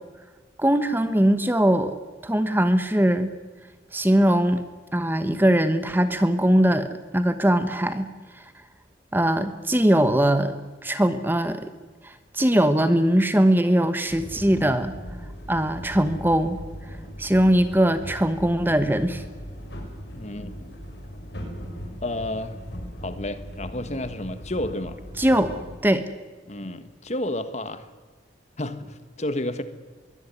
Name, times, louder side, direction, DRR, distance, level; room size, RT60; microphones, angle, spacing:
voice 1, 0.6-1.9 2.2-3.3 3.9-4.6 4.9-8.1 9.1-10.5 10.8-11.7 12.0-14.9 15.5-16.6 17.2-19.2 25.2-26.0, right 1 dB, 10° right, 11 dB, 1.1 m, -21 dB
sound 1, 14.1-25.8, equal, 65° left, 5.8 m, -39 dB
voice 2, 20.1-20.8 22.0-22.6 23.0-25.0 26.5-27.9 28.6-29.6, left 1 dB, 40° left, 11 dB, 1.5 m, -31 dB
22.5 x 17.0 x 9.6 m, 1.4 s
head